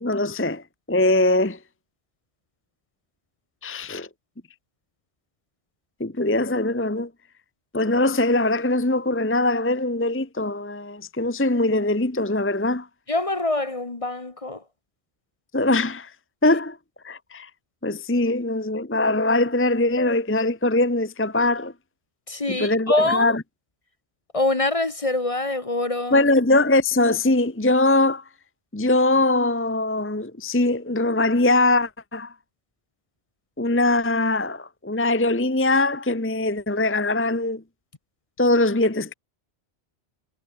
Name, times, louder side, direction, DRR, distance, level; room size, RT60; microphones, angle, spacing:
voice 1, 0.0-1.6 3.6-4.1 6.0-7.1 7.7-12.9 15.5-16.1 16.4-16.8 17.0-17.5 17.8-21.7 22.5-23.4 26.1-28.2 28.7-32.3 33.6-37.6 38.4-39.1, left 2 dB, 10° left, 1.0 m, -22 dB
voice 2, 13.1-14.6 22.3-23.3 24.3-26.2, left 2 dB, 30° left, 1.3 m, -24 dB
omnidirectional pair, 1.2 m